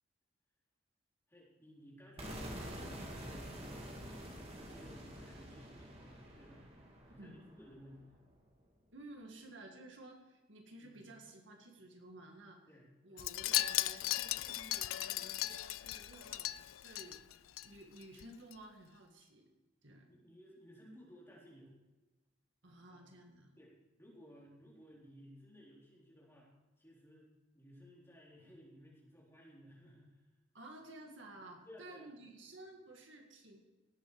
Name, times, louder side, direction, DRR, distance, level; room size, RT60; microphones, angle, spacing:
voice 1, 1.3-4.2 4.5-6.7 7.0-8.2 10.8-11.1 12.7-12.9 20.1-21.8 22.9-23.2 23.6-26.5 26.8-30.2 31.6-32.1, equal, 10° left, -5 dB, 3.8 m, -58 dB
sound 1, 2.2-8.1, equal, 30° right, 2.3 m, -47 dB
voice 2, 8.9-12.6 13.0-16.5 16.8-17.2 17.6-19.5 19.8-20.1 22.6-23.5 30.5-33.6, right 1 dB, 65° right, 2 dB, 2.0 m, -54 dB
Wind chime, 13.2-17.7 18.0-18.2 18.5-18.6, left 15 dB, 90° left, 0.4 m, -37 dB
18.0 x 8.3 x 4.9 m, 1.1 s
head